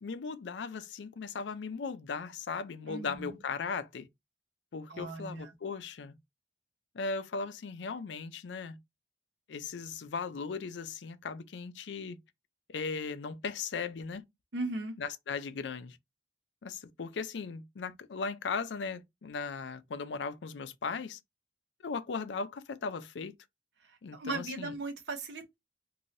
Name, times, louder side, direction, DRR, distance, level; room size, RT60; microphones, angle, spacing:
voice 1, 0.0-4.1 4.7-6.1 6.9-8.8 9.5-12.2 12.7-14.2 15.0-16.0 16.6-21.2 21.8-23.3 24.0-24.7, left 5 dB, 80° left, 0.5 m, -37 dB
voice 2, 2.9-3.4 4.9-5.5 14.5-15.0 23.8-25.5, right 2 dB, 75° right, 0.9 m, -38 dB
3.2 x 2.6 x 2.6 m
head